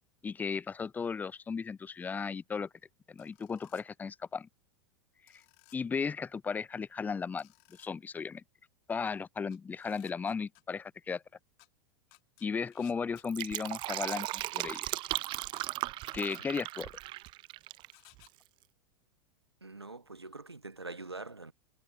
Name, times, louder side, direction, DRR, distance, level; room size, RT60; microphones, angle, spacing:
voice 1, 0.2-2.7 3.1-4.5 5.7-7.5 7.8-8.4 8.9-11.2 12.4-14.3 14.5-14.9 16.1-16.9, left 5 dB, 15° left, 0.5 m, -35 dB
sound 1, 3.2-3.8 5.3-5.8 7.4-7.9 9.5-10.6 11.6-11.7 12.1-13.3 14.7-14.8 15.3-15.6 16.1-16.4 17.9-18.3, left 35 dB, 50° left, 5.9 m, -60 dB
Fill (with liquid), 13.1-17.9 18.2-18.3, right 18 dB, 40° right, 0.7 m, -37 dB
voice 2, 19.6-21.5, right 3 dB, 90° right, 1.6 m, -44 dB
figure-of-eight pair, 90°, 13 cm